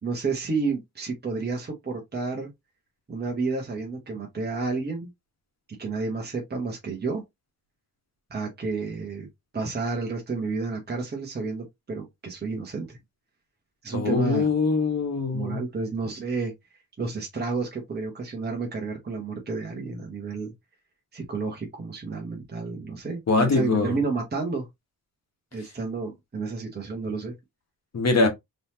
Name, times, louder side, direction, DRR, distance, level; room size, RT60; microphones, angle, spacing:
voice 1, 0.0-2.5 3.1-5.1 5.8-7.2 8.3-9.3 9.5-13.0 13.8-14.5 15.3-16.5 17.0-20.5 21.1-24.7 25.5-27.3, right 4 dB, 25° right, 1.1 m, -31 dB
voice 2, 13.9-15.6 23.3-24.0 27.9-28.3, left 3 dB, 45° left, 1.3 m, -23 dB
3.9 x 3.2 x 2.8 m
wide cardioid pair, 165°, 37 cm